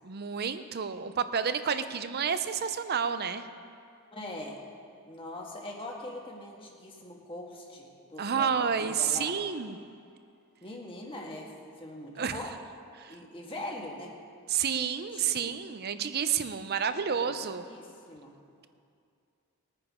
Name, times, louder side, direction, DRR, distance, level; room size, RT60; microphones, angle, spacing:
voice 1, 0.0-3.4 8.2-9.8 12.2-12.4 13.0-13.2 14.5-17.6, right 7 dB, 45° right, 11 dB, 0.6 m, -30 dB
voice 2, 4.1-4.6 5.0-9.3 10.6-11.5 11.8-12.5 13.1-14.1 15.1-15.5 17.2-17.4 17.6-18.4, left 1 dB, 25° left, -1 dB, 1.7 m, -42 dB
20.5 x 9.8 x 3.7 m, 2.4 s
head